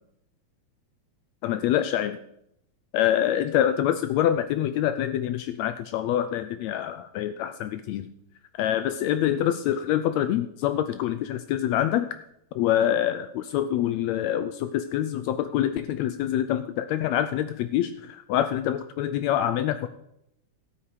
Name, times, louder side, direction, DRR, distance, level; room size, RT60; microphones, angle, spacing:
voice 1, 1.4-2.2 2.9-8.1 8.6-12.1 12.5-19.9, left 11 dB, 80° left, 11 dB, 1.7 m, -25 dB
13.0 x 8.9 x 4.8 m, 0.78 s
omnidirectional pair, 3.3 m